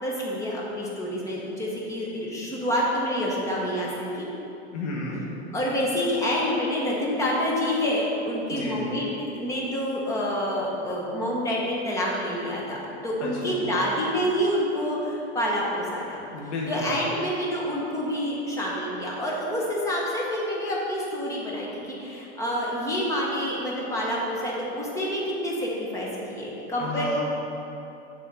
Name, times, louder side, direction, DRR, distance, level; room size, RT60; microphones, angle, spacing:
voice 1, 0.0-3.9 4.1-4.3 5.5-16.2 16.7-27.2, equal, 10° left, -4 dB, 1.0 m, -27 dB
voice 2, 4.7-5.2 8.5-8.8 13.2-13.6 16.3-16.9 26.8-27.2, left 2 dB, 85° left, -4 dB, 1.4 m, -32 dB
7.1 x 4.2 x 6.5 m, 2.9 s
supercardioid pair, 160°, 34 cm